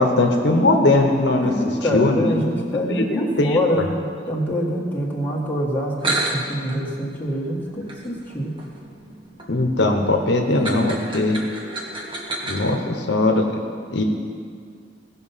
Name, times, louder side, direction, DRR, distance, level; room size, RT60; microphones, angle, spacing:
voice 1, 0.0-2.4 2.9-3.9 9.5-11.5 12.5-13.4 13.9-14.0, left 2 dB, 65° left, 3 dB, 0.9 m, -20 dB
voice 2, 1.4-8.5 12.7-12.8, equal, 10° left, -5 dB, 1.7 m, -25 dB
sound 1, 5.7-5.8 6.0-12.7, right 2 dB, 30° right, 1.4 m, -31 dB
16.5 x 5.8 x 5.6 m, 2.2 s
head